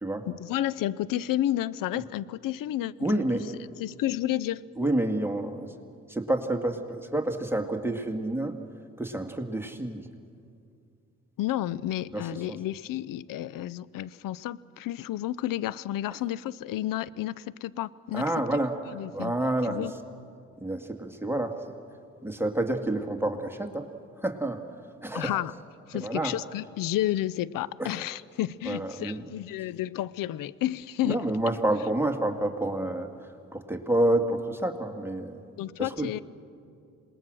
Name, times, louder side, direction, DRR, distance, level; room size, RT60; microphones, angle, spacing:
voice 1, 0.3-3.2 3.8-4.6 11.4-18.2 18.9-19.3 19.7-19.9 25.1-25.5 25.9-31.3 35.6-36.2, left 13 dB, 75° left, 20 dB, 0.6 m, -31 dB
voice 2, 3.0-3.5 4.8-5.7 6.1-8.5 9.0-10.1 12.1-12.6 18.1-18.7 19.1-19.9 20.6-21.6 22.2-23.9 24.2-24.6 25.0-25.4 25.9-26.3 27.8-28.0 28.7-29.2 31.0-33.1 33.5-35.4 35.8-36.1, right 1 dB, 5° right, 4 dB, 2.2 m, -28 dB
27.0 x 20.0 x 6.3 m, 2.4 s
hypercardioid pair, 45°, 33 cm